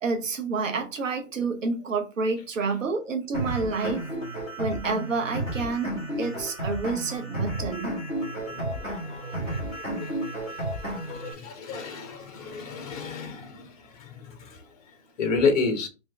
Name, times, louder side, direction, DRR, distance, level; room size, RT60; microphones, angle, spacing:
voice 1, 0.0-4.1 4.6-7.9, right 4 dB, 90° right, 1.0 m, -29 dB
sound 1, 3.3-11.3, right 1 dB, 5° right, 0.6 m, -32 dB
voice 2, 8.2-13.7 14.0-14.6 15.2-15.9, left 4 dB, 30° left, 0.9 m, -31 dB
3.5 x 2.9 x 3.4 m
hypercardioid pair, 160°, 38 cm